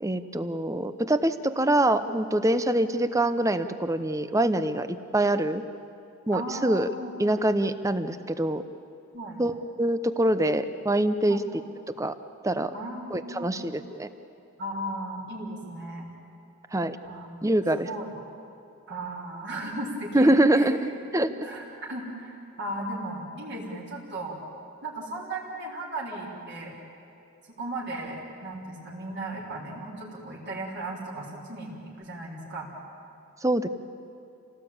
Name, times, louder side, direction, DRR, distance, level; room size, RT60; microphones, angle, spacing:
voice 1, 0.0-5.6 6.3-6.9 7.2-8.6 9.4-11.4 12.0-12.1 12.4-12.7 13.1-14.1 16.7-17.0 17.4-17.9 20.1-21.3 33.4-33.7, right 1 dB, 15° right, 11 dB, 0.8 m, -24 dB
voice 2, 6.3-7.1 9.1-9.4 11.3-11.4 12.7-13.5 14.6-16.1 17.0-17.3 17.8-18.1 18.9-20.7 21.2-24.4 24.8-26.7 27.5-32.7, right 1 dB, 50° right, -4 dB, 4.1 m, -36 dB
28.0 x 18.0 x 8.7 m, 2.7 s
head